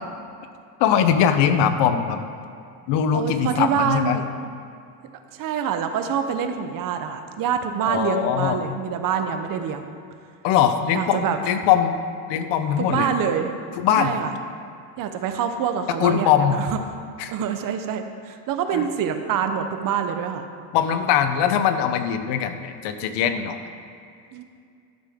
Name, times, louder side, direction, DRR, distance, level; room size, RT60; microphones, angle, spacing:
voice 1, 0.8-2.2 2.9-4.2 7.8-8.6 10.4-11.9 12.3-13.1 13.8-14.1 16.0-16.6 17.2-17.3 18.7-18.9 20.7-23.6, left 8 dB, 70° left, 9 dB, 0.8 m, -21 dB
voice 2, 3.1-4.2 5.3-9.9 10.9-11.4 12.8-13.5 14.0-14.3 15.0-16.8 17.3-20.4 24.3-24.4, right 7 dB, 50° right, 7 dB, 0.8 m, -26 dB
12.0 x 6.6 x 3.6 m, 2.3 s
cardioid pair, 130°, 44 cm